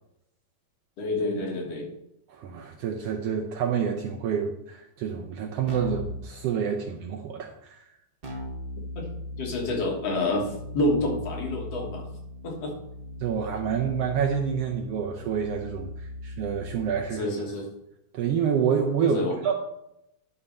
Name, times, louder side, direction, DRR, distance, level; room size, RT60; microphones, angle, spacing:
voice 1, 1.0-1.9 9.0-9.1 9.4-12.0 12.4-12.7 17.2-17.7 19.0-19.4, left 2 dB, 60° left, 0 dB, 2.6 m, -28 dB
voice 2, 2.3-7.9 13.2-17.3 18.1-19.2 19.4-19.5, right 7 dB, 75° right, 2 dB, 1.5 m, -28 dB
Keyboard (musical), 5.7-6.2 8.2-17.1, left 1 dB, 45° right, 0.7 m, -38 dB
11.0 x 4.2 x 5.4 m, 0.82 s
omnidirectional pair, 3.3 m